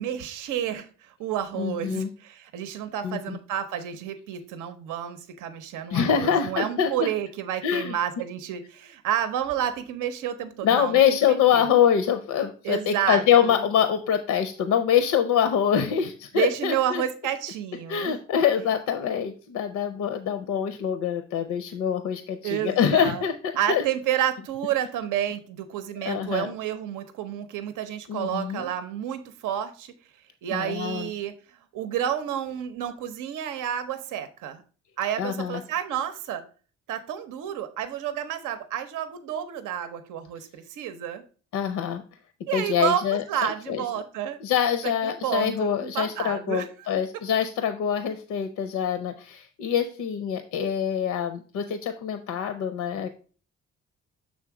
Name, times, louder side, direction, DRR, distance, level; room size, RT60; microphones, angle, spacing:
voice 1, 0.0-11.6 12.6-13.6 16.3-18.2 22.4-23.2 23.6-29.9 30.4-34.6 35.0-36.4 36.9-41.2 42.5-44.4 45.0-46.9, right 10 dB, 85° right, 9 dB, 0.7 m, -30 dB
voice 2, 1.6-2.1 3.0-3.4 5.9-7.1 7.6-7.9 10.6-17.0 17.9-23.8 26.0-26.5 28.1-28.7 30.5-31.1 35.2-35.6 41.5-42.0 42.5-43.8 44.4-53.1, left 8 dB, 75° left, 9 dB, 0.6 m, -25 dB
6.4 x 3.5 x 4.7 m, 0.39 s
cardioid pair, 90°, 30 cm